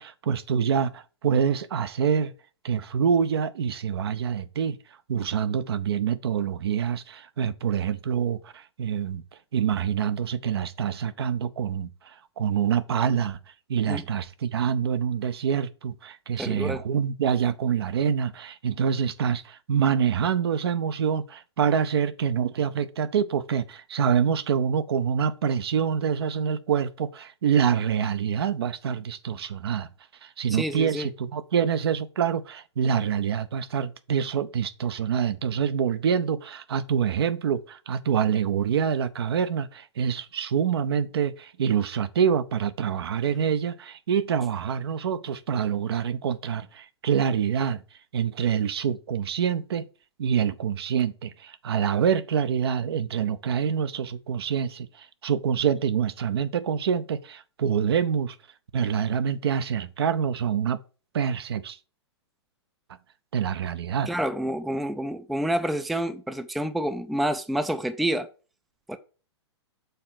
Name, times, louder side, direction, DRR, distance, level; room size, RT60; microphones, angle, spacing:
voice 1, 0.0-2.3 2.6-4.8 5.1-9.2 9.5-13.4 13.7-29.9 30.2-47.8 48.1-49.9 50.2-58.3 58.7-60.8 61.1-61.8 63.3-64.1, right 7 dB, 60° right, 0.7 m, -26 dB
voice 2, 16.4-16.8 30.5-31.1 64.1-68.3 68.9-69.0, right 1 dB, ahead, 0.4 m, -28 dB
6.8 x 3.9 x 5.7 m
figure-of-eight pair, 115°, 15 cm